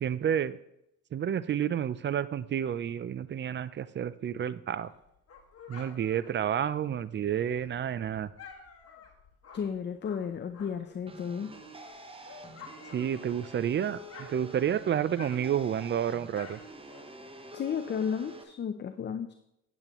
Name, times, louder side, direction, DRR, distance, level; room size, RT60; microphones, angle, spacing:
voice 1, 0.0-0.6 1.1-4.9 5.7-8.3 12.9-16.6, right 9 dB, 40° right, 16 dB, 0.4 m, -30 dB
Dog, 4.7-11.0 11.4-13.7 14.0-17.4, left 5 dB, 50° left, 1.6 m, -51 dB
voice 2, 9.5-11.5 17.5-19.3, left 7 dB, 35° left, 8 dB, 0.5 m, -33 dB
sound 1, 11.1-18.4, right 2 dB, 20° right, 0.9 m, -47 dB
8.7 x 8.2 x 3.0 m, 0.80 s
cardioid pair, 90°, 30 cm